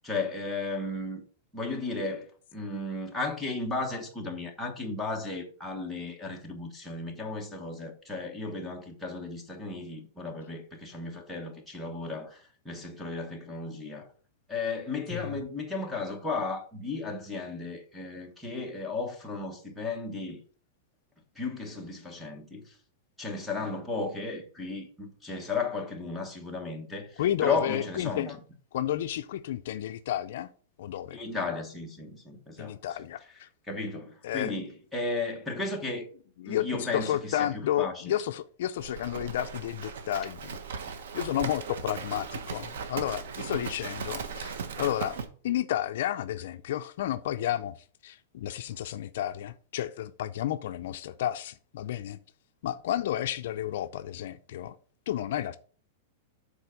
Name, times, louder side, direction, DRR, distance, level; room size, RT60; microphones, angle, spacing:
voice 1, 0.0-1.2 1.5-14.1 14.5-20.4 21.3-22.7 23.2-28.4 31.1-32.8 33.7-36.1 36.4-38.2, left 3 dB, 5° left, 1.2 m, -34 dB
voice 2, 15.1-15.4 27.2-28.4 28.7-30.5 30.8-31.2 32.6-33.5 34.2-34.5 36.4-40.6 41.1-47.8 48.0-52.2 52.6-54.8 55.1-55.6, left 12 dB, 65° left, 0.4 m, -31 dB
Livestock farm animals working animals, 38.8-45.3, right 6 dB, 85° right, 1.1 m, -38 dB
7.2 x 4.2 x 5.1 m
supercardioid pair, 165°, 0 cm